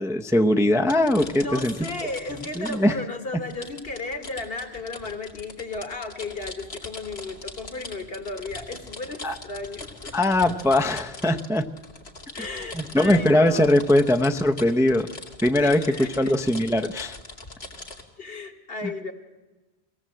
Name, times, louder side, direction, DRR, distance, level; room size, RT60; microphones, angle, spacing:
voice 1, 0.0-1.7 2.6-3.0 9.2-9.3 10.1-11.7 12.7-15.1 15.4-17.2, left 1 dB, 5° right, 6 dB, 0.6 m, -21 dB
sound 1, 0.9-3.0 3.5-18.0, left 2 dB, 85° left, 2.3 m, -41 dB
voice 2, 1.4-10.3 12.3-13.7 15.6-16.4 18.2-19.1, left 3 dB, 70° left, 7 dB, 1.9 m, -34 dB
24.0 x 17.0 x 7.6 m, 1.2 s
omnidirectional pair, 1.0 m